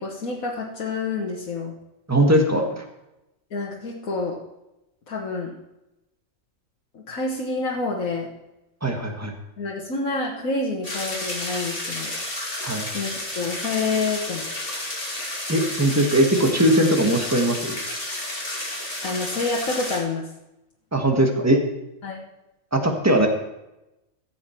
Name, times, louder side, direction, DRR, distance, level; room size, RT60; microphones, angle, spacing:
voice 1, 0.0-1.7 3.5-4.4 5.1-5.5 6.9-8.3 9.6-12.1 12.9-14.5 19.0-20.3 22.0-22.2, left 3 dB, 90° left, -2 dB, 1.8 m, -28 dB
voice 2, 2.1-2.8 8.8-9.3 12.6-12.9 15.5-17.8 20.9-21.6 22.7-23.3, right 1 dB, 10° right, 3 dB, 1.5 m, -20 dB
sound 1, 10.8-20.0, left 1 dB, 45° left, 3.0 m, -31 dB
15.0 x 7.7 x 4.5 m, 0.93 s
omnidirectional pair, 1.4 m